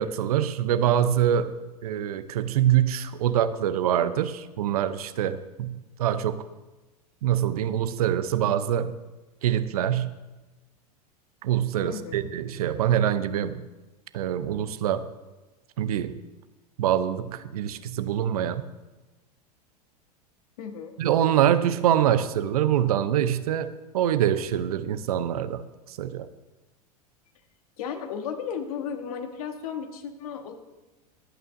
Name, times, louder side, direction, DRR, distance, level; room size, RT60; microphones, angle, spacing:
voice 1, 0.0-1.5 1.8-6.5 7.2-9.0 9.4-10.2 11.4-13.7 14.1-15.1 15.8-16.2 16.8-18.6 21.0-26.3, right 10 dB, 65° right, 12 dB, 0.7 m, -25 dB
voice 2, 11.8-12.3 20.6-21.0 27.8-30.6, left 7 dB, 60° left, 6 dB, 1.5 m, -34 dB
23.5 x 8.7 x 2.7 m, 1.1 s
figure-of-eight pair, 85°, 20 cm